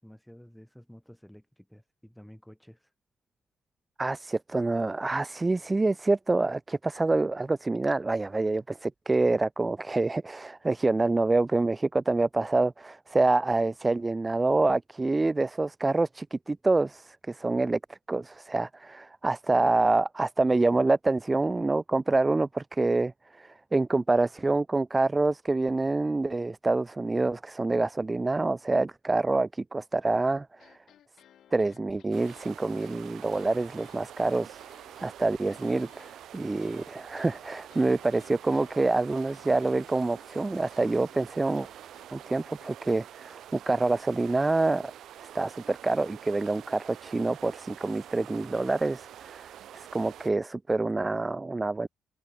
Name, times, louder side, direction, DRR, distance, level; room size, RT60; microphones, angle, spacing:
voice 1, 0.0-2.9, equal, ahead, 6.7 m, -51 dB
voice 2, 4.0-30.8 31.5-34.6 35.0-41.7 42.1-44.9 45.3-51.9, right 3 dB, 20° right, 0.3 m, -27 dB
sound 1, 30.5-42.7, left 10 dB, 70° left, 4.3 m, -59 dB
sound 2, 32.1-50.3, right 11 dB, 75° right, 6.7 m, -47 dB
cardioid pair, 90°, 0 cm